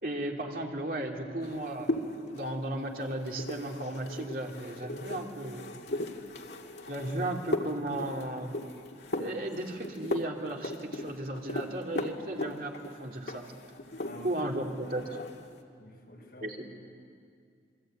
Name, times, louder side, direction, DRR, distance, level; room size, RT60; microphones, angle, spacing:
voice 1, 0.0-5.8 6.9-8.6 9.2-13.5 14.2-15.0 16.4-16.6, right 1 dB, 50° right, 1 dB, 2.9 m, -35 dB
sound 1, 1.4-14.5 14.8-15.5, left 1 dB, 75° left, 2.2 m, -38 dB
voice 2, 14.0-14.5 15.8-16.6, left 1 dB, 60° left, -1 dB, 6.8 m, -48 dB
28.0 x 22.0 x 9.1 m, 2.3 s
head